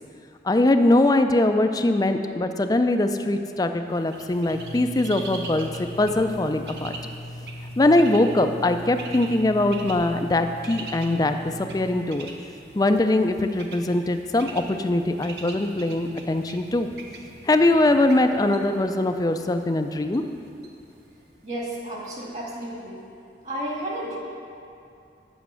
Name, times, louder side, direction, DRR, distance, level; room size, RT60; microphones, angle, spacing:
voice 1, 0.4-7.0 7.8-12.3 12.7-16.9 17.4-20.2, left 2 dB, 20° left, 7 dB, 0.4 m, -22 dB
Bird, 3.9-21.7, right 3 dB, 70° right, 0.9 m, -44 dB
sound 1, 4.5-12.0, left 1 dB, 90° left, 0.7 m, -39 dB
voice 2, 21.4-23.0 23.4-24.2, right 1 dB, 40° right, -4 dB, 2.1 m, -32 dB
8.2 x 6.0 x 7.6 m, 2.5 s
head